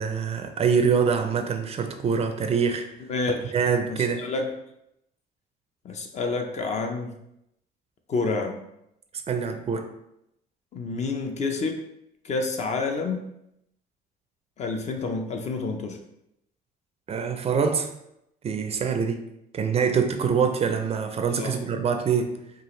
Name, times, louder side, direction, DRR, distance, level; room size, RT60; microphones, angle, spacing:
voice 1, 0.0-2.9 3.5-4.2 9.3-9.9 17.1-17.9 18.4-19.2 19.5-22.4, right 6 dB, 35° right, 7 dB, 0.4 m, -24 dB
voice 2, 3.1-3.5 3.9-4.5 5.8-7.1 8.1-8.6 10.7-11.8 12.2-13.2 14.6-16.0 21.4-21.6, left 3 dB, 40° left, 4 dB, 0.6 m, -28 dB
4.7 x 2.4 x 3.1 m, 0.81 s
cardioid pair, 110°, 17 cm